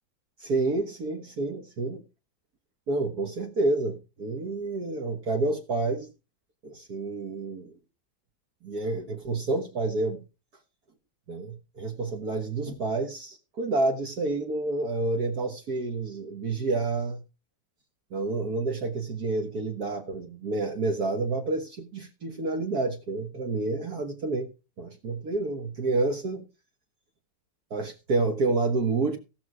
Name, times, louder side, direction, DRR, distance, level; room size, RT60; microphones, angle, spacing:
voice 1, 0.4-2.0 2.9-6.1 6.6-7.8 8.6-10.2 11.3-17.2 18.1-24.5 24.8-26.4 27.7-29.2, right 3 dB, 55° right, 1.9 m, -29 dB
17.0 x 6.4 x 4.8 m
omnidirectional pair, 2.0 m